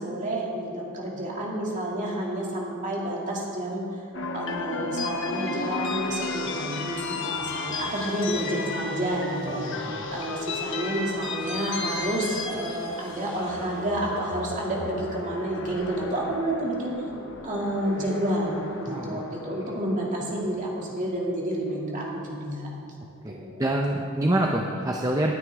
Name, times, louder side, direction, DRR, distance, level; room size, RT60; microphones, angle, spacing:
voice 1, 0.0-3.8 4.3-16.9 17.4-22.7 23.3-23.7, right 1 dB, 35° right, -4 dB, 2.5 m, -30 dB
sound 1, 4.1-20.3, left 3 dB, 55° left, 1.1 m, -34 dB
voice 2, 9.4-10.0 18.8-19.2 23.2-23.3 23.6-25.3, right 1 dB, 15° right, 0 dB, 0.6 m, -26 dB
19.0 x 9.5 x 3.6 m, 2.5 s
head